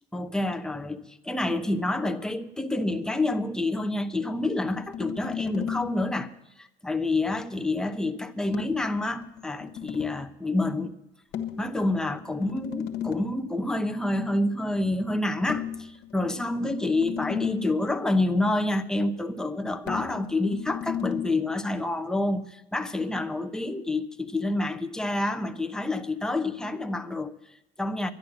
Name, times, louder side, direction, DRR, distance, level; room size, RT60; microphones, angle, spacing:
voice 1, 0.1-6.3 6.6-10.9 11.6-28.1, left 2 dB, 5° left, 0.9 m, -28 dB
sound 1, 4.7-6.1 8.5-10.2 11.3-13.4 15.5-17.9 19.9-21.3, left 9 dB, 75° left, 1.5 m, -35 dB
11.5 x 10.5 x 7.5 m
cardioid pair, 110°, 17 cm